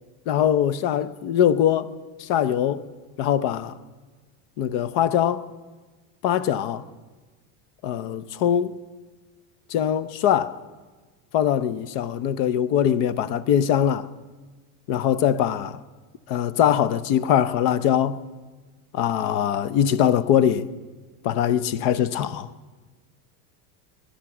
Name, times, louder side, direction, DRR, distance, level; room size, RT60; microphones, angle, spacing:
voice 1, 0.3-1.9 2.2-2.8 3.2-3.8 4.6-5.5 6.2-6.8 7.8-8.8 9.7-10.6 11.3-14.1 14.9-15.8 16.3-18.2 18.9-20.7 21.2-22.5, left 9 dB, 60° left, 0.8 m, -22 dB
21.5 x 10.0 x 6.0 m
supercardioid pair, 130°, 46 cm